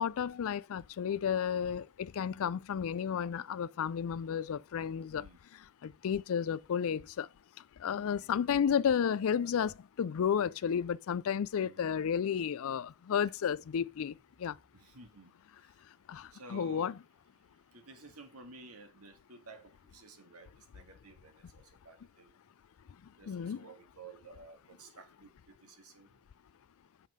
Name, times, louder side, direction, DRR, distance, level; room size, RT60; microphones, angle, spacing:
voice 1, 0.0-5.3 5.8-7.3 7.8-14.1 14.4-14.6 16.1-16.9 23.3-23.6, left 7 dB, 65° left, 0.4 m, -32 dB
voice 2, 5.1-5.4 7.9-8.4 11.6-12.0 14.7-15.3 15.6-15.8 16.3-17.0 17.5-22.4 23.2-26.2, right 3 dB, 75° right, 2.0 m, -54 dB
7.4 x 5.7 x 5.0 m
head